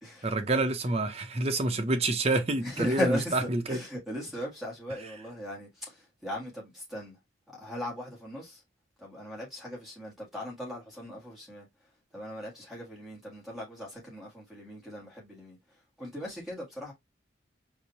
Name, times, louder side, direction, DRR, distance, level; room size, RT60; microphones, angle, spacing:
voice 1, 0.2-3.8, right 2 dB, 30° right, 0.7 m, -28 dB
voice 2, 2.6-7.2 7.5-8.6 9.0-11.7 12.1-16.9, equal, ahead, 1.7 m, -38 dB
4.8 x 2.6 x 2.7 m
head